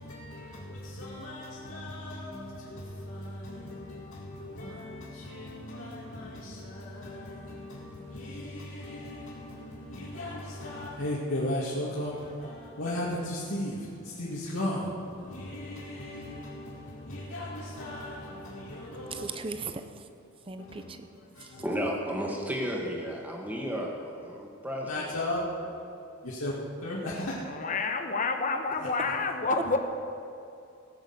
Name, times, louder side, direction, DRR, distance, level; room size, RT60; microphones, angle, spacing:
voice 1, 0.0-19.2 20.6-20.9 21.3-21.7 24.9-25.4 26.2-26.5 26.8-27.3, left 1 dB, 75° left, -6 dB, 2.1 m, -36 dB
voice 2, 19.1-20.0 20.5-21.1 21.4-21.5, right 4 dB, 25° right, 8 dB, 0.7 m, -38 dB
voice 3, 21.6-25.1 25.4-25.5, equal, 10° right, -1 dB, 1.8 m, -33 dB
voice 4, 27.4-29.8, left 3 dB, 40° left, 5 dB, 1.1 m, -29 dB
17.5 x 6.5 x 8.0 m, 2.6 s
head